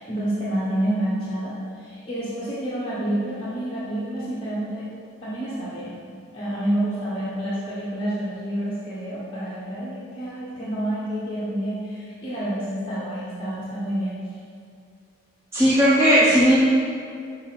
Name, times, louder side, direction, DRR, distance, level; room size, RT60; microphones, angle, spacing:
voice 1, 0.0-4.9 5.2-6.0 6.3-14.3, right 1 dB, 25° left, -9 dB, 1.1 m, -28 dB
voice 2, 15.5-16.6, equal, 10° right, -8 dB, 0.8 m, -16 dB
6.2 x 5.0 x 5.8 m, 2.4 s
head